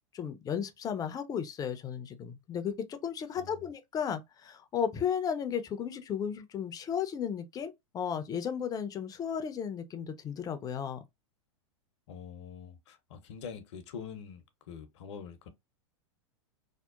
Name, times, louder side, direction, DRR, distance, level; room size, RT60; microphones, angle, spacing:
voice 1, 0.1-11.0, left 8 dB, 25° left, 0.4 m, -34 dB
voice 2, 3.4-3.7 12.1-15.5, left 6 dB, 65° left, 0.6 m, -45 dB
2.8 x 2.0 x 2.3 m
hypercardioid pair, 100°, 16 cm